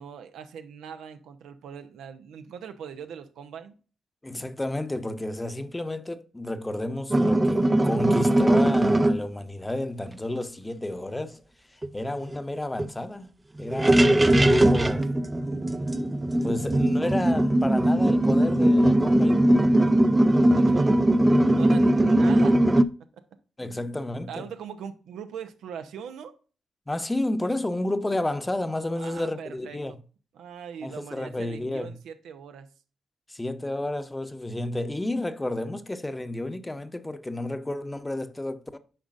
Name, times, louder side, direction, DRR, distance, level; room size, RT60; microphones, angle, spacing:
voice 1, 0.0-3.8 16.6-16.7 20.4-21.0 21.5-23.3 24.3-26.3 29.0-30.0 30.3-32.7, right 7 dB, 85° right, 0.6 m, -41 dB
voice 2, 4.2-11.4 11.7-13.3 13.6-15.1 16.4-19.5 23.6-24.4 26.9-29.9 30.8-32.0 33.3-38.8, left 1 dB, 20° left, 0.8 m, -31 dB
sound 1, 7.1-9.2 11.8-11.9 12.2-12.4 12.8-12.9 13.6-22.8, right 1 dB, 25° right, 0.5 m, -20 dB
8.9 x 5.0 x 2.5 m
supercardioid pair, 50°, 0 cm